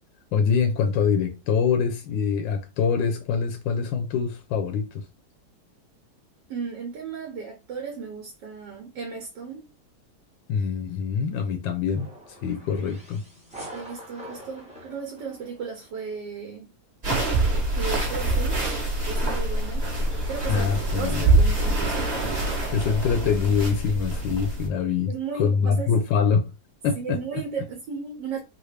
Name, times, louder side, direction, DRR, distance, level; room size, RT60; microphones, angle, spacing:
voice 1, 0.3-5.0 10.5-13.2 20.5-21.4 22.7-25.1 25.4-26.5 26.8-27.4, left 6 dB, 80° left, 1.3 m, -24 dB
voice 2, 6.5-9.7 12.7-12.9 13.7-16.7 17.7-18.7 19.0-19.9 20.3-22.1 25.1-25.9 27.0-28.4, right 5 dB, 75° right, 1.3 m, -35 dB
sound 1, 11.9-16.0, right 1 dB, 5° right, 0.5 m, -44 dB
sound 2, 17.0-24.7, right 2 dB, 25° right, 1.1 m, -25 dB
4.0 x 2.2 x 3.2 m
omnidirectional pair, 2.0 m